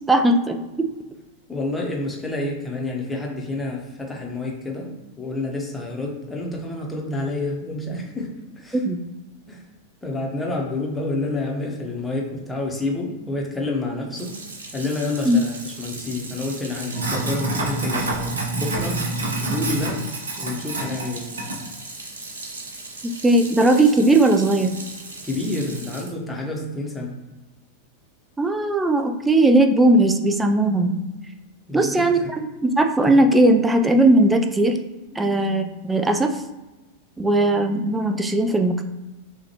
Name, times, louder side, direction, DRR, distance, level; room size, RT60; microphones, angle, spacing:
voice 1, 0.1-0.9 8.7-9.0 15.3-15.4 23.0-24.8 28.4-31.0 31.7-34.8 35.1-36.4 37.2-38.9, right 2 dB, 10° right, 6 dB, 0.4 m, -18 dB
voice 2, 1.5-8.8 9.5-9.7 10.0-14.3 14.7-19.0 19.4-20.1 20.4-21.3 25.2-27.2 31.7-32.3 35.1-35.4, left 2 dB, 10° left, -1 dB, 1.0 m, -29 dB
Sink (filling or washing), 14.1-26.1, right 2 dB, 70° right, 0.8 m, -30 dB
6.3 x 2.5 x 2.9 m, 1.1 s
figure-of-eight pair, 90°, 0 cm